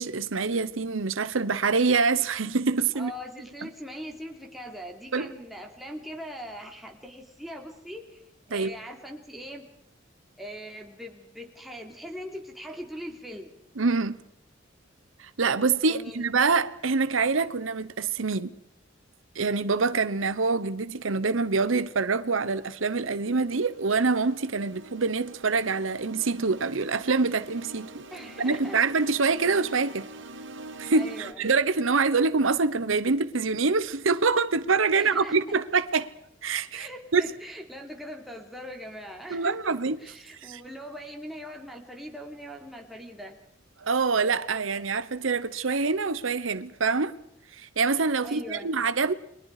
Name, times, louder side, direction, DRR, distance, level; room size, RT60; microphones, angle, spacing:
voice 1, 0.0-3.1 5.1-5.3 8.5-8.7 13.8-14.2 15.2-18.5 19.3-28.0 28.4-30.1 30.8-36.1 36.4-37.2 39.3-40.0 40.4-40.6 43.8-47.1 47.6-49.1, right 4 dB, 85° right, 1.0 m, -25 dB
voice 2, 2.9-8.2 8.5-9.7 10.4-13.6 15.9-16.3 28.1-28.8 30.9-31.4 35.0-35.6 36.7-43.4 48.2-48.7, equal, ahead, 3.1 m, -41 dB
sound 1, 22.6-31.3, right 2 dB, 65° right, 1.8 m, -46 dB
30.0 x 22.0 x 4.9 m
head